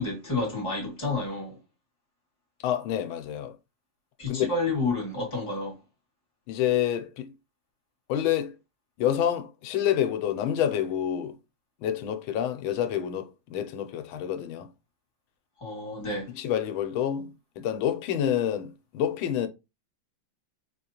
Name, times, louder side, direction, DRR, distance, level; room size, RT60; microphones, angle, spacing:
voice 1, 0.0-1.6 4.2-5.8 15.6-16.3, left 3 dB, 15° left, 1.8 m, -30 dB
voice 2, 2.6-3.6 4.3-4.5 6.5-7.3 8.1-8.6 9.0-11.4 11.8-14.7 16.3-19.5, left 10 dB, 90° left, 1.4 m, -28 dB
4.2 x 2.9 x 2.8 m
omnidirectional pair, 2.2 m